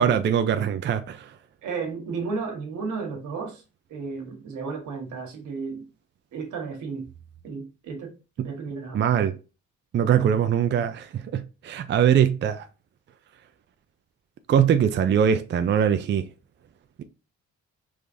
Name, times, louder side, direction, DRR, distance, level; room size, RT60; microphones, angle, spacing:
voice 1, 0.0-1.4 8.9-9.4 9.9-12.7 14.5-16.3 17.0-17.1, right 8 dB, 40° right, 0.4 m, -22 dB
voice 2, 1.6-3.6 3.9-5.9 6.3-7.1 7.4-8.1 8.4-9.1, right 4 dB, 80° right, 1.4 m, -33 dB
4.9 x 3.4 x 2.6 m
cardioid pair, 90°, 30 cm